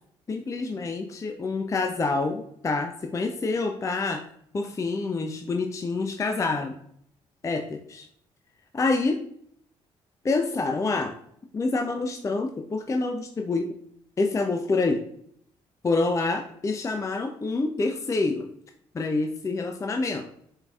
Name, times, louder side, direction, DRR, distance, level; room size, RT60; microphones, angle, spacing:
voice 1, 0.3-4.2 4.5-6.8 7.4-8.1 8.7-9.1 10.2-11.1 11.5-13.7 14.2-15.0 15.8-18.5 18.9-20.3, left 3 dB, 20° left, 5 dB, 0.4 m, -27 dB
4.5 x 2.6 x 2.3 m, 0.69 s
hypercardioid pair, 45°, 15 cm